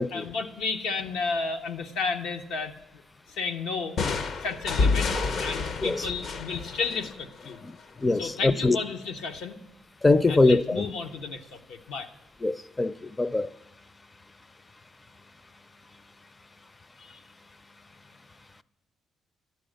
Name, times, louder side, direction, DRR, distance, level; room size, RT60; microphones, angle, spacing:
voice 1, 0.1-2.7 3.4-4.0 4.4-5.1 5.4-7.6 8.1-9.6 10.3-12.1 17.0-17.1, left 4 dB, 90° left, 0.9 m, -32 dB
sound 1, 4.0-7.6, left 4 dB, 60° left, 0.7 m, -28 dB
voice 2, 8.0-8.8 10.0-10.9 12.4-13.5, left 2 dB, 20° left, 0.4 m, -23 dB
12.0 x 9.4 x 6.4 m
cardioid pair, 90°, 0 cm